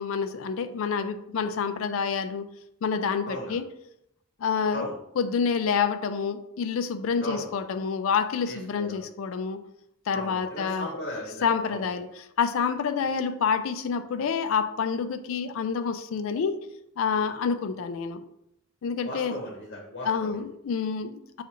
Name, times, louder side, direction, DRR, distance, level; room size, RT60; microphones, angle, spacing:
voice 1, 0.0-2.5 2.8-3.6 4.4-4.9 5.2-9.6 10.1-10.9 11.4-12.1 12.4-16.6 17.0-18.2 18.8-19.3 20.1-21.4, left 6 dB, 65° left, 9 dB, 0.3 m, -28 dB
voice 2, 7.2-7.5 8.5-9.0 10.1-11.8 13.0-13.1 19.0-20.4, left 1 dB, 50° left, -1 dB, 0.9 m, -37 dB
6.0 x 2.4 x 2.9 m, 0.80 s
head